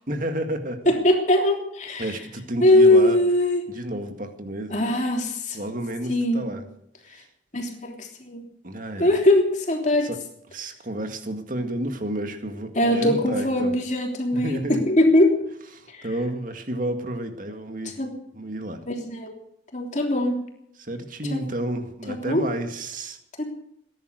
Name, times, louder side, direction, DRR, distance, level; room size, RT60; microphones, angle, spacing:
voice 1, 0.1-0.9 2.0-3.2 3.7-4.8 5.5-6.6 7.1-7.3 8.6-9.1 10.0-10.2 10.5-13.7 14.3-14.8 15.7-18.0 18.3-18.8 20.8-23.2, right 1 dB, 45° right, 6 dB, 2.0 m, -31 dB
voice 2, 0.8-2.0 2.6-3.6 4.7-5.6 6.1-6.4 7.5-8.4 9.0-10.1 12.7-15.4 18.0-18.1 18.9-19.3 19.7-20.4 21.3-21.4 22.1-22.4 23.4-23.5, left 1 dB, 40° left, 2 dB, 3.2 m, -21 dB
20.0 x 11.0 x 6.5 m, 0.73 s
head